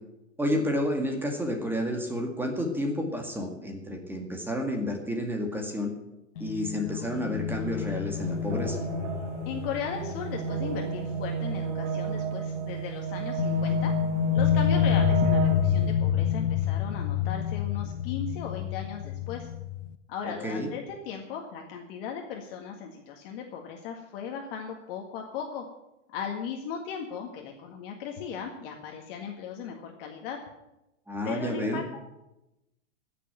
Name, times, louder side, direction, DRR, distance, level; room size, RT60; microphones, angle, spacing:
voice 1, 0.4-5.9 6.4-8.8 20.3-20.7 31.1-31.8, equal, 5° right, 3 dB, 2.0 m, -30 dB
sound 1, 6.4-11.8 12.1-12.2 13.4-19.9, left 10 dB, 75° left, 0.9 m, -28 dB
sound 2, 8.2-15.9, right 7 dB, 50° right, 3.6 m, -32 dB
voice 2, 9.5-14.0 14.3-19.5 20.1-25.7 26.1-30.4 31.2-32.0, left 7 dB, 50° left, 2 dB, 1.9 m, -37 dB
14.5 x 6.9 x 8.8 m, 0.92 s
hypercardioid pair, 135°, 37 cm